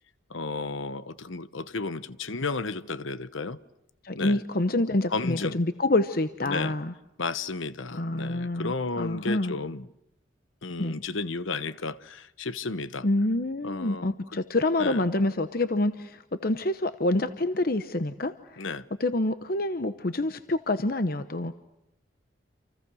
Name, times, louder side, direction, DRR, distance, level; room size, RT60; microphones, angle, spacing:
voice 1, 0.3-3.6 4.1-4.4 5.1-5.6 6.4-6.7 7.2-9.9 10.6-13.1 13.6-14.1 14.8-15.0 18.6-18.9, left 3 dB, 90° left, 1.1 m, -33 dB
voice 2, 4.0-6.9 7.9-9.5 10.8-10.9 13.0-18.6 19.0-21.6, left 2 dB, 50° left, 0.9 m, -27 dB
29.5 x 28.0 x 6.3 m
head